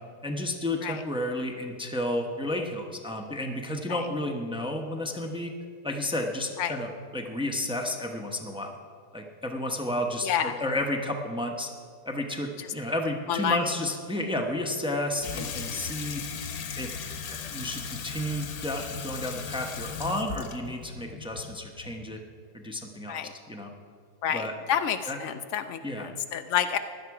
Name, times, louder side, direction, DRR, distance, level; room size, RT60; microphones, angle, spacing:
voice 1, 0.2-5.5 5.8-8.7 9.1-11.7 12.1-16.2 16.8-16.9 17.3-22.2 22.5-23.2 23.5-23.7 24.3-24.5 25.1-25.2 25.8-26.1, left 1 dB, 5° right, 2 dB, 0.6 m, -32 dB
voice 2, 10.2-10.6 13.3-13.6 23.1-23.3 24.2-26.8, left 9 dB, 85° left, 9 dB, 0.6 m, -29 dB
Water tap faucet / Sink (filling or washing), 15.2-22.2, left 6 dB, 65° left, 1.3 m, -37 dB
16.0 x 11.0 x 4.8 m, 2.2 s
omnidirectional pair, 1.8 m